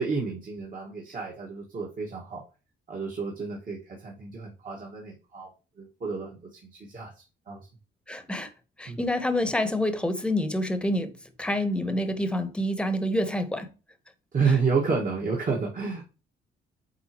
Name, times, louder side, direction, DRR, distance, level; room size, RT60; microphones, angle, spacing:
voice 1, 0.0-2.4 2.9-5.5 5.8-7.7 8.9-9.0 14.3-16.0, right 5 dB, 45° right, 1.7 m, -30 dB
voice 2, 8.1-8.5 8.8-11.1 11.4-13.7, left 1 dB, 5° left, 1.0 m, -27 dB
8.4 x 3.9 x 3.0 m
cardioid pair, 90°, 20 cm